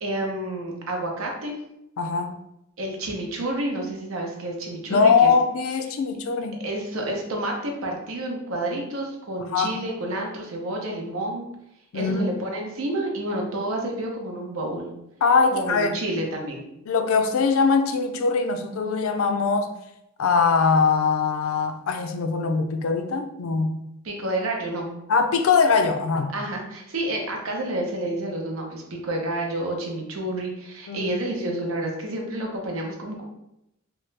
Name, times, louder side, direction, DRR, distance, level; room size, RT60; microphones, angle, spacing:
voice 1, 0.0-1.5 2.8-5.3 6.6-11.5 11.9-14.9 15.5-16.6 24.0-24.9 26.3-33.2, right 1 dB, 90° right, 1 dB, 0.7 m, -29 dB
voice 2, 2.0-2.3 4.9-6.6 9.4-9.8 11.9-12.4 15.2-16.0 16.9-19.7 20.2-23.8 25.1-26.3 30.9-31.1, left 5 dB, 85° left, 7 dB, 0.4 m, -22 dB
2.9 x 2.2 x 3.2 m, 0.84 s
head